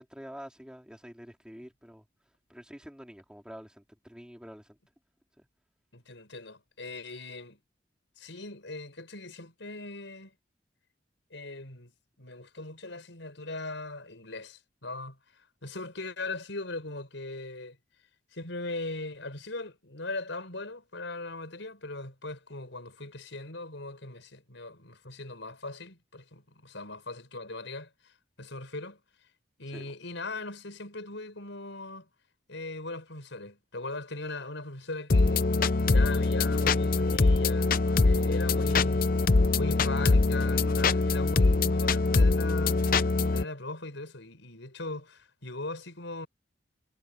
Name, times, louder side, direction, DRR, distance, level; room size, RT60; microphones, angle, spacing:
voice 1, 0.0-2.0 2.5-4.8 5.4-5.5 29.7-29.9, equal, 5° right, 4.3 m, -47 dB
voice 2, 5.9-7.6 8.2-10.3 11.3-11.9 12.2-17.8 18.3-28.1 28.4-29.0 29.6-32.1 32.5-35.5 35.8-39.1 39.5-42.9 43.3-46.3, left 2 dB, 80° left, 5.0 m, -39 dB
sound 1, 35.1-43.4, left 3 dB, 45° left, 0.6 m, -23 dB
head